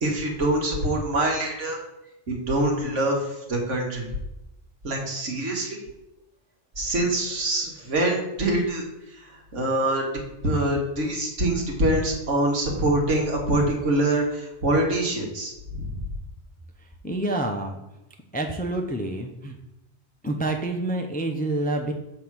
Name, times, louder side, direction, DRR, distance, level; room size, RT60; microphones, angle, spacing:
voice 1, 0.0-1.8 2.3-4.1 4.8-5.8 6.8-8.9 9.2-10.0 10.4-16.0, right 1 dB, 85° right, 0 dB, 1.8 m, -25 dB
voice 2, 17.0-17.8 18.3-19.5 20.2-21.9, right 2 dB, 10° left, 3 dB, 0.4 m, -27 dB
7.0 x 3.5 x 6.0 m, 0.94 s
omnidirectional pair, 1.2 m